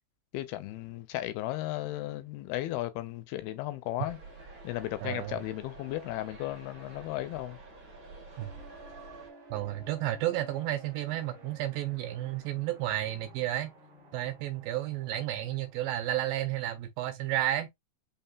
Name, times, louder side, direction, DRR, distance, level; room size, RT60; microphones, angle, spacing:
voice 1, 0.3-4.2 4.6-7.6, left 15 dB, 80° left, 2.6 m, -35 dB
sound 1, 4.0-9.3, right 3 dB, 30° right, 1.7 m, -49 dB
voice 2, 5.0-5.4 8.4-8.5 9.5-13.7 14.1-17.7, right 13 dB, 80° right, 2.2 m, -32 dB
sound 2, 8.3-15.9, right 2 dB, 55° right, 1.5 m, -53 dB
5.6 x 3.5 x 2.3 m
omnidirectional pair, 4.4 m